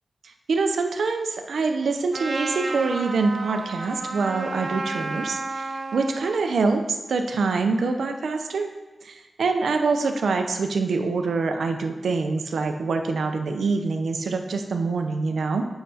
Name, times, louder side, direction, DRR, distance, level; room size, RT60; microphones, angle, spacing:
voice 1, 0.5-8.7 9.0-15.6, right 4 dB, 90° right, 5 dB, 0.5 m, -25 dB
Trumpet, 2.1-6.4, right 3 dB, 45° right, 0.6 m, -32 dB
7.4 x 5.6 x 2.8 m, 1.2 s
wide cardioid pair, 85°, 0 cm